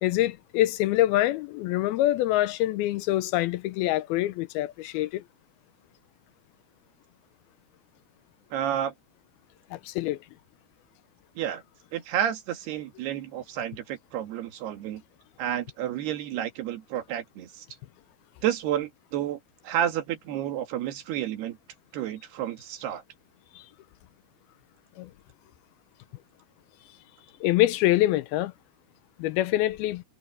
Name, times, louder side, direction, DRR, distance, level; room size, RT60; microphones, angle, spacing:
voice 1, 0.0-5.2 9.7-10.2 25.0-25.1 27.4-28.5 29.2-30.0, left 15 dB, 80° left, 2.5 m, -25 dB
voice 2, 8.5-8.9 11.4-11.6 11.9-15.0 15.4-17.7 18.4-21.6 21.9-23.0, right 11 dB, 85° right, 3.9 m, -30 dB
omnidirectional pair, 4.5 m